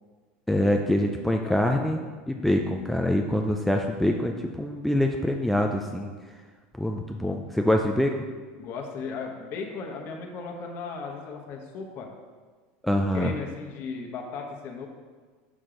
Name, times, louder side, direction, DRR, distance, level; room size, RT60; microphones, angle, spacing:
voice 1, 0.5-2.0 2.3-6.1 6.8-8.3 12.8-13.3, left 1 dB, 5° left, 2 dB, 0.4 m, -25 dB
voice 2, 1.4-1.8 8.6-12.1 13.1-14.9, left 5 dB, 45° left, 1 dB, 1.1 m, -36 dB
6.7 x 6.2 x 3.8 m, 1.4 s
supercardioid pair, 125°, 5 cm